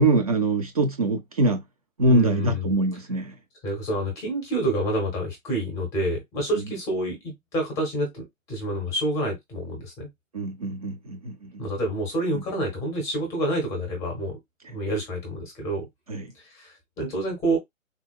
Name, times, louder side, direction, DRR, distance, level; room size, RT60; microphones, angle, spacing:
voice 1, 0.0-1.6 2.0-3.3 10.3-11.5 12.3-12.4 16.1-16.2, right 2 dB, 30° right, 0.5 m, -23 dB
voice 2, 2.0-2.7 3.6-10.1 11.6-14.4 14.7-15.9 16.3-17.6, right 1 dB, 10° left, 0.7 m, -28 dB
3.7 x 2.2 x 2.2 m
hypercardioid pair, 140°, 40 cm